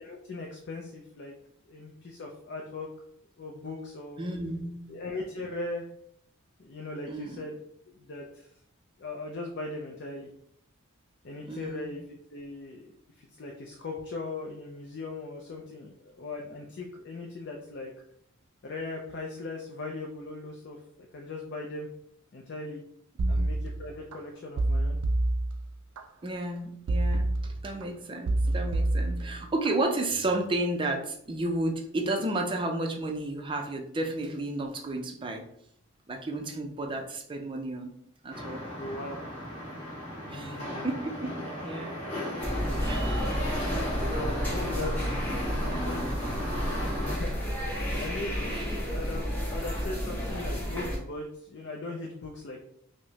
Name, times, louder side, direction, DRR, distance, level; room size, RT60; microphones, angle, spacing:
voice 1, 0.0-1.3 1.7-2.9 3.4-4.2 4.9-5.9 6.6-7.6 8.0-8.5 9.0-10.3 11.2-12.9 13.2-17.9 18.6-20.8 21.1-21.9 22.3-22.8 23.3-25.0 38.8-39.2 40.2-40.9 44.2-46.4 47.1-47.3 47.9-48.5 48.9-52.6, left 2 dB, 50° left, 0 dB, 0.4 m, -39 dB
voice 2, 4.2-4.9 7.1-7.5 11.5-12.0 23.2-23.5 26.2-35.4 36.1-37.9 38.2-38.6 40.3-41.4 41.6-42.0 42.8-43.1 46.6-46.8 48.5-48.8, right 2 dB, 25° right, 2 dB, 0.4 m, -32 dB
sound 1, 23.2-24.2 24.6-26.0 26.9-27.8 28.2-29.7 30.1-30.5, right 2 dB, 85° right, 0.4 m, -28 dB
sound 2, 38.3-47.2, equal, 35° left, 1.3 m, -35 dB
sound 3, 42.4-51.0, equal, 10° left, 0.8 m, -31 dB
4.7 x 2.1 x 2.7 m, 0.70 s
head